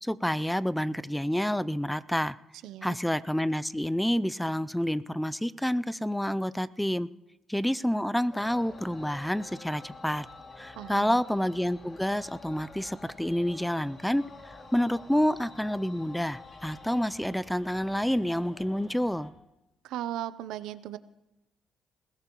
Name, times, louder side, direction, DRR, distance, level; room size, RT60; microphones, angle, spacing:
voice 1, 0.0-2.4 2.8-7.1 7.5-10.3 10.6-19.3, equal, 5° left, 17 dB, 0.4 m, -28 dB
voice 2, 2.6-3.0 10.8-11.2 19.8-21.0, right 12 dB, 90° right, 14 dB, 0.6 m, -37 dB
sound 1, 8.3-19.3, left 2 dB, 45° left, 2.6 m, -49 dB
21.0 x 16.5 x 3.0 m, 0.93 s
cardioid pair, 90°, 0 cm